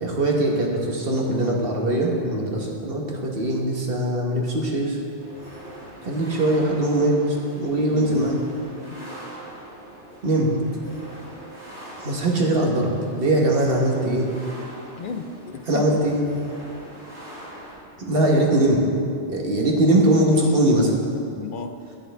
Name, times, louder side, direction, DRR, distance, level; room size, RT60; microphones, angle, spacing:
voice 1, 0.0-5.0 6.0-8.4 10.2-10.5 12.0-14.3 15.7-16.2 18.0-18.8 19.3-21.0, right 1 dB, 55° right, -1 dB, 1.6 m, -21 dB
sound 1, 5.2-17.7, right 1 dB, 85° right, 2.9 m, -42 dB
voice 2, 7.9-8.3 8.9-9.2 15.0-16.0 21.4-21.8, left 5 dB, 60° left, 7 dB, 0.6 m, -34 dB
11.0 x 10.5 x 3.4 m, 2.5 s
omnidirectional pair, 1.2 m